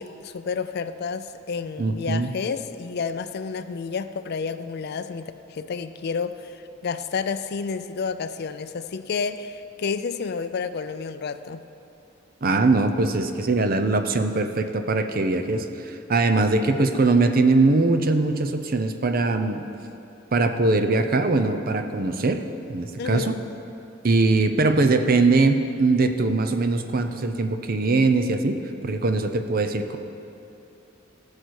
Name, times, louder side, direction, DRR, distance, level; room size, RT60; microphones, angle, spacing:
voice 1, 0.0-11.6 16.4-16.6 23.0-23.4, left 5 dB, 55° left, 11 dB, 0.4 m, -30 dB
voice 2, 1.8-2.3 12.4-19.6 20.3-22.4 22.7-23.4 24.0-28.6 28.8-30.0, right 3 dB, 45° right, 8 dB, 0.6 m, -21 dB
17.0 x 6.6 x 4.7 m, 2.8 s
head